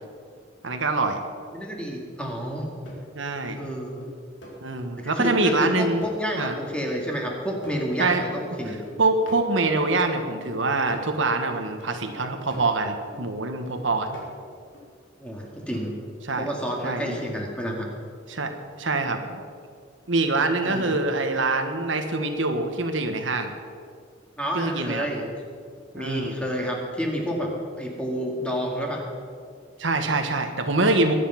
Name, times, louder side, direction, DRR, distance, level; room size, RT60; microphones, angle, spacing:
voice 1, 0.6-1.2 3.1-3.6 4.6-6.0 6.4-6.5 8.0-8.2 9.0-14.2 16.3-16.5 16.8-17.2 18.3-18.5 18.8-19.4 20.1-23.5 24.5-25.1 25.9-26.4 29.8-31.1, right 3 dB, 75° right, 6 dB, 1.4 m, -24 dB
voice 2, 1.5-2.7 3.6-4.0 5.0-8.8 15.2-15.9 16.4-17.9 20.6-20.9 24.4-25.2 25.9-29.0, equal, 5° left, -1 dB, 2.2 m, -29 dB
sound 1, 1.9-2.0 2.5-5.2 5.6-8.4 8.7-13.3 13.7-14.8 15.3-15.8 16.3-16.4, left 1 dB, 70° left, 4.1 m, -45 dB
22.0 x 8.4 x 5.8 m, 2.2 s
head